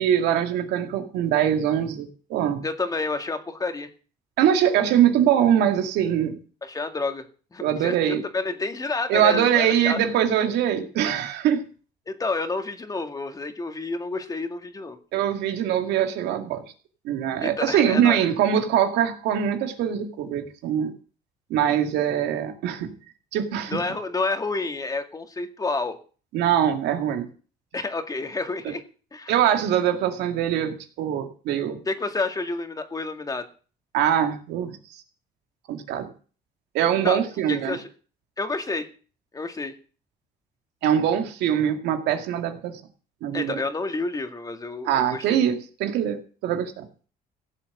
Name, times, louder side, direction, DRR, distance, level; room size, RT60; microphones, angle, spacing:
voice 1, 0.0-2.6 4.4-6.4 7.6-8.2 9.1-11.6 15.1-16.6 17.0-20.9 21.5-22.9 23.3-23.8 26.3-27.3 28.6-28.7 29.3-31.8 33.9-35.0 35.7-36.1 36.7-37.8 40.8-42.8 43.2-43.6 44.8-46.9, right 9 dB, 85° right, 6 dB, 2.2 m, -23 dB
voice 2, 2.6-3.9 6.6-7.3 7.5-8.0 8.3-10.0 12.1-15.0 17.4-18.2 23.7-26.0 27.7-28.8 29.1-29.3 31.9-33.5 37.0-37.2 37.5-37.9 38.4-38.9 39.3-39.7 43.3-45.2, left 3 dB, 20° left, 6 dB, 2.0 m, -29 dB
16.0 x 7.4 x 7.9 m, 0.40 s
cardioid pair, 110°, 17 cm